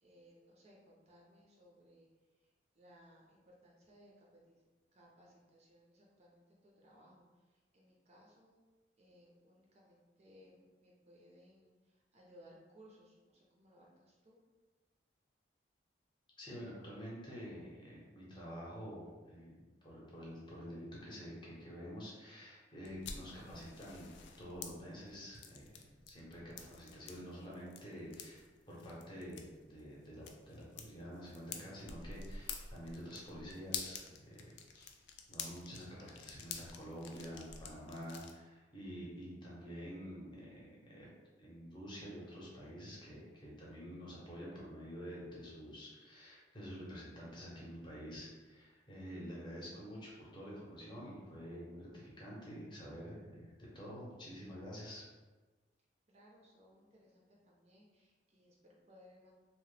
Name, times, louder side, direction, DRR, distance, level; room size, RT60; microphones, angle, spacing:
voice 1, 0.0-2.1 2.8-7.2 7.7-8.6 9.0-11.7 12.1-14.4 56.1-59.3, equal, 35° right, -3 dB, 0.5 m, -63 dB
voice 2, 16.4-19.6 19.8-24.1 24.4-25.8 26.1-35.0 35.3-41.1 41.4-55.0, equal, 25° left, -5 dB, 0.7 m, -48 dB
sound 1, 22.8-38.3, left 6 dB, 75° left, 0.3 m, -49 dB
2.8 x 2.0 x 3.2 m, 1.3 s
head